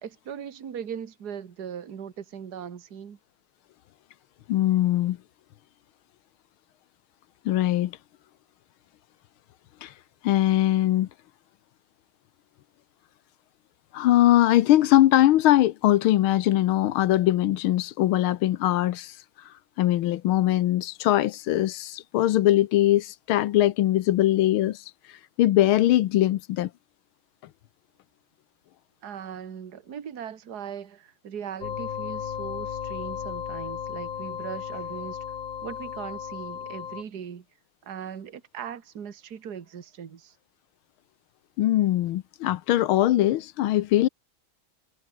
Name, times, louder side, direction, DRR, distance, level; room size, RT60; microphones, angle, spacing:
voice 1, 0.0-3.2 29.0-35.2 35.6-37.4 37.8-40.3, right 8 dB, 50° right, 2.1 m, -39 dB
voice 2, 4.5-5.2 7.4-8.0 9.8-11.1 13.9-26.7 41.6-44.1, left 14 dB, 85° left, 1.6 m, -22 dB
sound 1, 31.6-37.0, left 8 dB, 65° left, 2.4 m, -35 dB
omnidirectional pair, 2.3 m